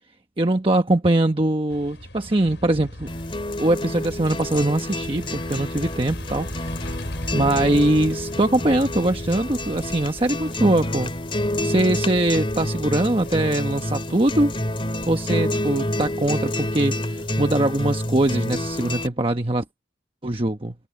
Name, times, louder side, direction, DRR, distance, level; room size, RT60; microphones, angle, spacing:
voice 1, 0.4-3.1 3.6-6.5 7.3-11.1 11.6-14.5 15.1-19.6 20.2-20.7, right 1 dB, 30° right, 1.1 m, -22 dB
sound 1, 1.7-16.7, left 1 dB, 75° left, 7.7 m, -38 dB
sound 2, 3.1-19.1, left 1 dB, 30° left, 3.5 m, -28 dB
head